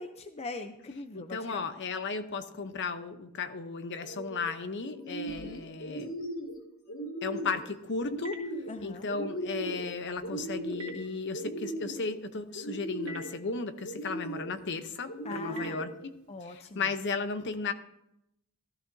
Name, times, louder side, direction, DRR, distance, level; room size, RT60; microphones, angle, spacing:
voice 1, 0.0-1.7 5.3-5.7 8.7-9.1 15.2-15.9 16.3-16.9, left 3 dB, 30° left, 8 dB, 0.5 m, -42 dB
voice 2, 1.1-6.1 7.2-8.4 8.8-16.2 16.4-17.7, left 4 dB, 55° left, 10 dB, 0.8 m, -35 dB
sound 1, 3.9-4.4 4.8-5.5 5.8-6.5 6.9-7.6 8.0-8.7 9.1-9.9 10.2-10.9 11.3-12.1 12.5-13.3 13.8-14.5 15.1-15.9, right 1 dB, 75° left, 2.3 m, -38 dB
Telephone, 7.5-16.4, equal, 80° right, 2.0 m, -53 dB
15.5 x 13.0 x 2.7 m, 0.81 s
head